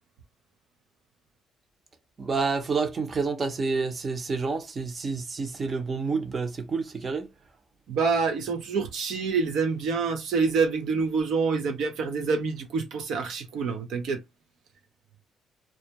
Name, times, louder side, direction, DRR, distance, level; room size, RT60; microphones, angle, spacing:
voice 1, 2.2-7.3, right 4 dB, 35° right, 0.6 m, -29 dB
voice 2, 7.9-14.2, right 4 dB, 80° right, 0.5 m, -27 dB
2.2 x 2.1 x 2.8 m
cardioid pair, 115°, 0 cm